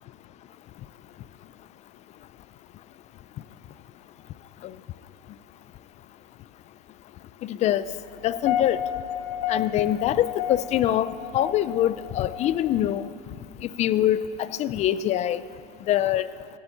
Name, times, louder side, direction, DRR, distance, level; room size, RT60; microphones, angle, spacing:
voice 1, 7.4-7.8 8.2-8.8 9.5-13.1 13.6-15.4 15.9-16.2, left 12 dB, 35° left, 16 dB, 0.4 m, -24 dB
sound 1, 8.2-13.1, left 10 dB, 80° left, 0.7 m, -32 dB
14.5 x 9.8 x 5.7 m, 2.8 s
supercardioid pair, 120°, 21 cm